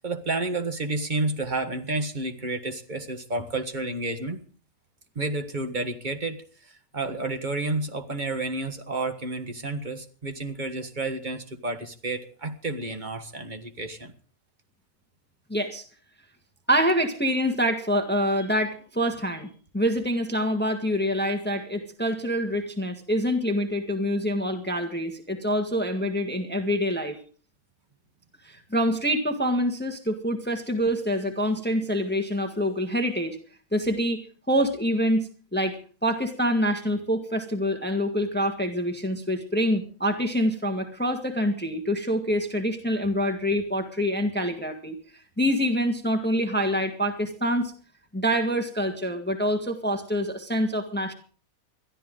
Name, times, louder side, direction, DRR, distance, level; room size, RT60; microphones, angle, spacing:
voice 1, 0.0-4.4 5.1-14.1, right 2 dB, 35° right, 7 dB, 1.6 m, -30 dB
voice 2, 15.5-15.8 16.7-27.2 28.4-33.4 33.7-34.2 34.5-45.0 45.4-47.7 48.1-51.1, equal, 5° left, 5 dB, 1.5 m, -26 dB
21.5 x 13.0 x 3.8 m, 0.41 s
omnidirectional pair, 1.5 m